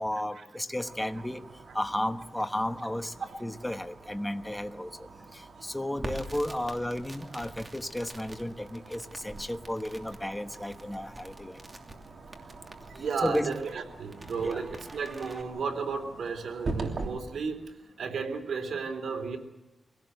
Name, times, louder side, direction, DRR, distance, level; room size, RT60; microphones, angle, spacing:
voice 1, 0.0-1.5 1.7-11.6 13.0-13.5 14.4-14.6, left 1 dB, 10° left, 7 dB, 1.2 m, -33 dB
sound 1, 0.7-17.1, right 3 dB, 55° right, 3.1 m, -44 dB
Crackle, 6.0-15.4, right 1 dB, 25° right, 2.8 m, -46 dB
voice 2, 12.9-19.4, right 5 dB, 85° right, 4 dB, 3.4 m, -33 dB
24.5 x 17.5 x 8.0 m, 1.1 s
wide cardioid pair, 110°, 0 cm